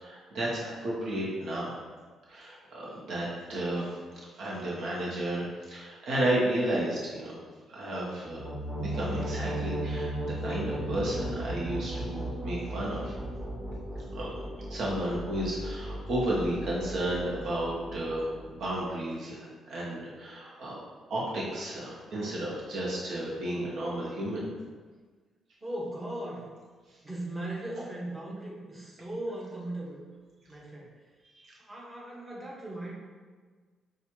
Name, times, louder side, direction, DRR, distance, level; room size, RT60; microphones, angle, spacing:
voice 1, 0.0-1.8 2.3-4.0 4.4-7.4 7.7-8.4 8.8-13.1 14.1-14.3 14.7-20.8 21.1-24.4 31.4-31.5, right 1 dB, 70° right, -5 dB, 1.0 m, -32 dB
sound 1, 8.2-18.9, right 1 dB, ahead, 0.9 m, -36 dB
voice 2, 25.6-26.5 27.0-30.0 30.5-30.9 31.6-32.9, right 1 dB, 20° right, -6 dB, 1.3 m, -38 dB
6.1 x 2.4 x 2.9 m, 1.4 s
cardioid pair, 90°, 0 cm